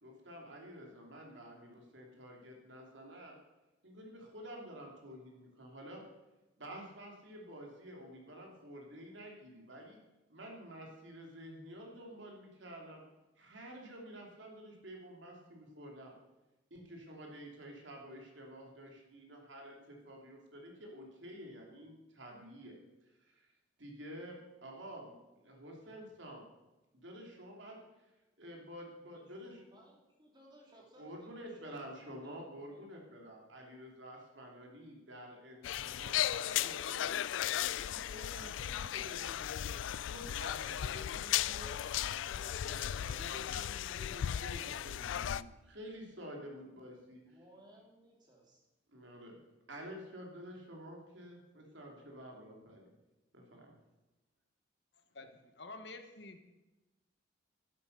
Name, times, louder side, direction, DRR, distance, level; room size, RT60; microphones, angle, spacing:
voice 1, 0.0-3.3 3.8-6.0 6.6-10.0 10.3-13.0 13.4-16.1 16.7-22.8 23.2-23.5 23.8-26.4 26.9-27.8 28.4-29.6 31.0-37.2 37.8-41.7 42.6-47.2 48.9-49.3 49.7-52.9 53.3-53.7, equal, 70° right, 0 dB, 3.0 m, -50 dB
voice 2, 29.1-33.0 40.5-44.7 47.2-48.6, right 1 dB, 20° right, -1 dB, 2.9 m, -61 dB
sound 1, 35.6-45.4, left 11 dB, 75° left, 0.3 m, -36 dB
sound 2, 36.2-47.8 52.0-52.1, right 3 dB, 55° right, 5.6 m, -65 dB
voice 3, 55.1-56.5, left 3 dB, 60° left, 7 dB, 1.2 m, -49 dB
11.5 x 8.6 x 6.7 m, 1.0 s
head